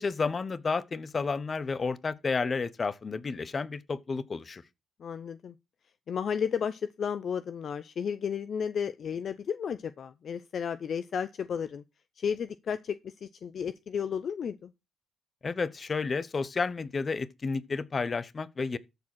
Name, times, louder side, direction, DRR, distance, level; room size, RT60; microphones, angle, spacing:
voice 1, 0.0-4.6 15.4-18.8, left 4 dB, 45° left, 1.0 m, -31 dB
voice 2, 5.0-5.6 6.1-11.8 12.2-14.7, left 7 dB, 60° left, 0.6 m, -33 dB
13.5 x 4.8 x 6.1 m
hypercardioid pair, 45°, 0 cm